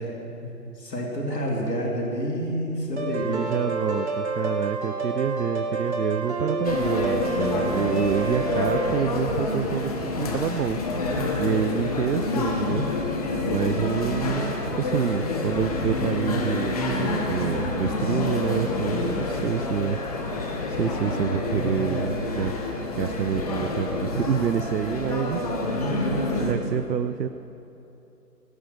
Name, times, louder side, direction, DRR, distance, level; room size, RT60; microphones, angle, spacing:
voice 1, 0.0-3.4 10.0-10.3 11.1-11.5 18.9-19.4 25.1-26.6, equal, 80° left, -2 dB, 3.2 m, -30 dB
sound 1, 3.0-8.9, right 3 dB, 40° right, 1.5 m, -29 dB
voice 2, 3.2-10.8 11.4-12.9 13.4-20.0 20.2-22.5 23.0-25.4 26.4-27.3, right 7 dB, 90° right, 11 dB, 0.7 m, -27 dB
sound 2, 6.6-26.5, left 2 dB, 25° left, 1.2 m, -28 dB
17.5 x 10.0 x 6.3 m, 2.9 s
figure-of-eight pair, 155°, 48 cm